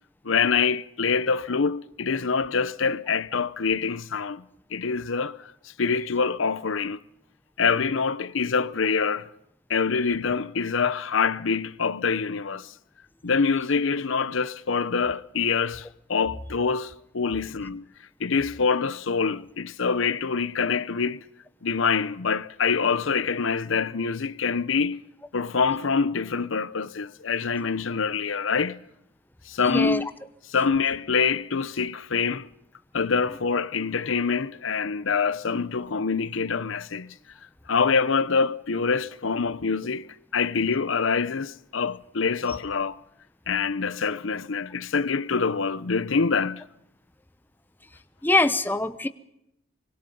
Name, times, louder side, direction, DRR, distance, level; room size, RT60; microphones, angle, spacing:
voice 1, 0.2-4.5 4.7-7.0 7.6-9.3 9.7-12.7 13.2-17.9 18.2-21.2 21.6-25.0 25.3-28.8 29.5-30.1 30.5-32.5 32.9-37.2 37.7-40.1 40.3-43.0 43.5-46.6, left 5 dB, 75° left, 0.8 m, -25 dB
voice 2, 29.6-30.0 48.2-49.1, left 2 dB, 10° left, 0.8 m, -23 dB
25.0 x 22.5 x 5.4 m
head